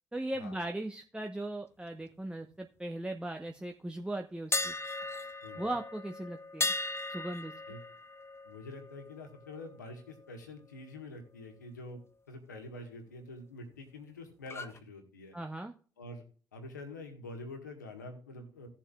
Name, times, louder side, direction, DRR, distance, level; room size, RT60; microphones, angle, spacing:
voice 1, 0.1-4.7 5.6-6.7 7.1-7.5 15.3-15.7, right 1 dB, 10° right, 3 dB, 1.0 m, -38 dB
sound 1, 4.5-10.4 10.7-11.0 14.5-14.8, left 2 dB, 25° left, 0.9 m, -38 dB
voice 2, 5.4-5.8 7.7-7.8 8.4-12.0 12.3-15.4 16.0-16.2 16.5-18.7, left 2 dB, 85° left, 4 dB, 1.6 m, -46 dB
16.5 x 7.3 x 2.4 m, 0.41 s
figure-of-eight pair, 45°, 10 cm